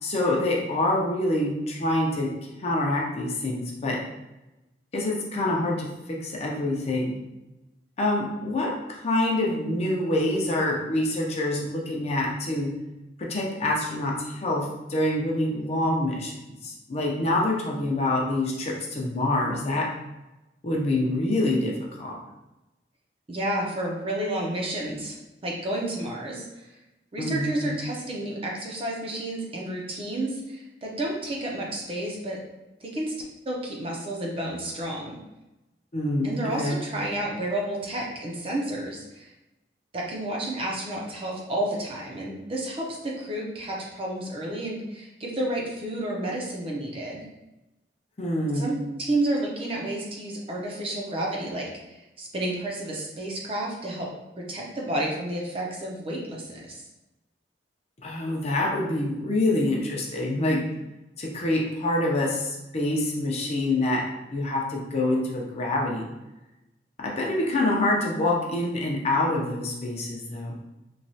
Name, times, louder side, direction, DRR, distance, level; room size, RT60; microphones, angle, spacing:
voice 1, 0.0-2.3 2.6-4.0 4.9-7.2 8.0-12.7 13.2-16.4 16.6-19.9 20.6-22.2 27.2-27.7 35.9-36.8 48.2-48.7 58.0-60.6 61.2-64.0 64.3-66.1 67.0-70.6, left 1 dB, 40° left, -2 dB, 0.5 m, -26 dB
voice 2, 23.3-25.2 25.4-26.7 27.1-32.4 32.8-33.1 33.5-35.2 36.2-39.3 39.9-47.3 48.5-54.1 54.4-56.8, right 1 dB, 30° right, -2 dB, 0.5 m, -31 dB
3.1 x 2.3 x 2.7 m, 0.99 s
head